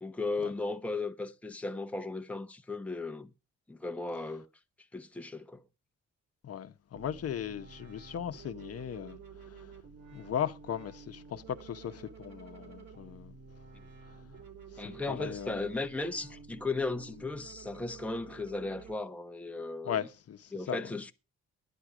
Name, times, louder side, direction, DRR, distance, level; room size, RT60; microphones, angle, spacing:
voice 1, 0.0-3.3 3.7-4.5 4.9-5.6 13.7-13.8 14.8-20.0 20.5-21.1, left 3 dB, 5° left, 0.9 m, -36 dB
voice 2, 6.4-9.2 9.5-9.7 10.1-13.3 14.8-15.7 19.8-20.8, left 9 dB, 55° left, 0.9 m, -37 dB
sound 1, 6.9-18.9, right 5 dB, 65° right, 3.8 m, -51 dB
12.0 x 10.0 x 4.9 m
cardioid pair, 90°, 30 cm